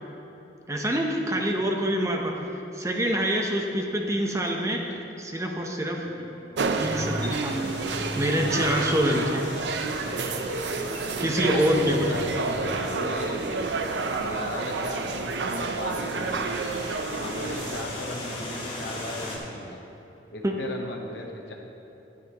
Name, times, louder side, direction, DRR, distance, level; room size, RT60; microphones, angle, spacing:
voice 1, 0.7-4.8 5.2-6.0 6.8-7.6 8.2-9.5 11.2-12.1 20.4-20.5, equal, 15° right, 1 dB, 0.7 m, -26 dB
sound 1, 6.0-18.1, equal, 10° left, 1.7 m, -40 dB
sound 2, 6.6-17.8, right 4 dB, 75° right, 0.5 m, -30 dB
sound 3, 7.4-19.4, left 1 dB, 30° left, 1.7 m, -40 dB
voice 2, 11.4-16.7 17.2-19.8 20.3-21.5, left 1 dB, 75° left, 1 dB, 1.0 m, -36 dB
10.5 x 9.8 x 3.0 m, 3.0 s
head